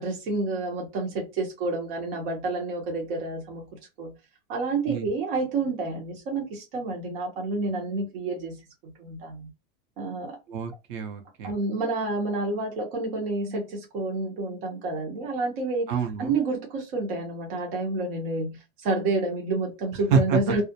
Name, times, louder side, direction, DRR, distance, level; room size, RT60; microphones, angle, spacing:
voice 1, 0.0-3.7 4.0-4.1 4.5-9.5 10.0-10.4 11.4-15.9 16.2-20.6, right 3 dB, 80° right, 1.0 m, -29 dB
voice 2, 10.5-11.5 15.9-16.4 20.1-20.5, right 6 dB, 60° right, 0.7 m, -26 dB
2.4 x 2.0 x 2.8 m
supercardioid pair, 165°, 29 cm